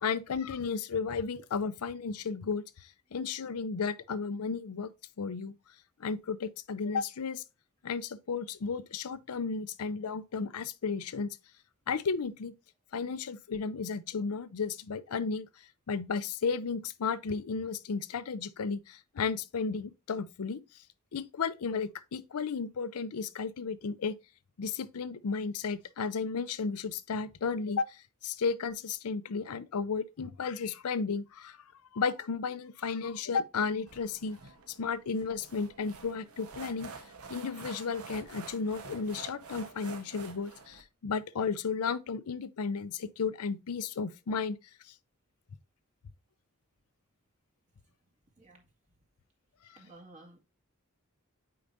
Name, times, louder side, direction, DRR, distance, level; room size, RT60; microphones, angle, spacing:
voice 1, 0.0-2.6 3.1-4.9 5.2-5.5 6.0-7.4 7.8-11.4 11.9-12.5 12.9-15.5 15.9-20.6 21.1-24.1 24.6-31.6 31.9-34.4 34.7-36.9 37.3-44.6, left 5 dB, 90° left, 0.5 m, -33 dB
sound 1, 33.9-40.8, right 4 dB, 85° right, 1.2 m, -48 dB
voice 2, 49.7-50.4, right 2 dB, 35° right, 1.8 m, -53 dB
8.5 x 4.8 x 2.6 m
head